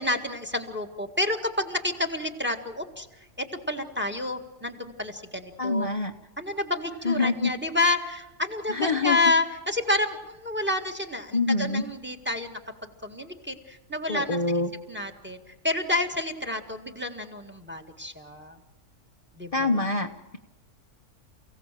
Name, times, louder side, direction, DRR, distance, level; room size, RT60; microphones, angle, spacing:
voice 1, 0.0-3.1 3.4-5.9 6.4-12.6 13.0-14.4 14.9-15.4 15.6-18.6 19.4-19.9, left 2 dB, 5° right, 7 dB, 1.7 m, -29 dB
voice 2, 5.6-6.1 7.0-7.5 8.7-9.2 11.3-11.8 14.1-14.7 19.5-20.4, left 3 dB, 25° left, 4 dB, 1.0 m, -25 dB
29.0 x 17.0 x 7.6 m, 1.1 s
omnidirectional pair, 1.6 m